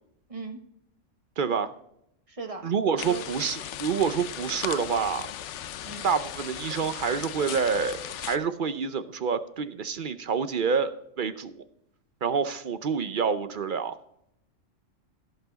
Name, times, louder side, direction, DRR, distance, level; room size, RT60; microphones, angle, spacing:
voice 1, 0.3-0.6 2.3-2.7 2.9-3.2 5.8-6.0, right 4 dB, 25° right, 5 dB, 1.3 m, -38 dB
voice 2, 1.4-1.7 2.6-5.3 6.0-10.9 11.2-11.6 12.2-13.9, right 6 dB, 50° right, 12 dB, 0.7 m, -27 dB
sound 1, 3.0-8.4, left 11 dB, 70° left, 0.9 m, -37 dB
16.0 x 5.8 x 4.0 m, 0.76 s
omnidirectional pair, 1.3 m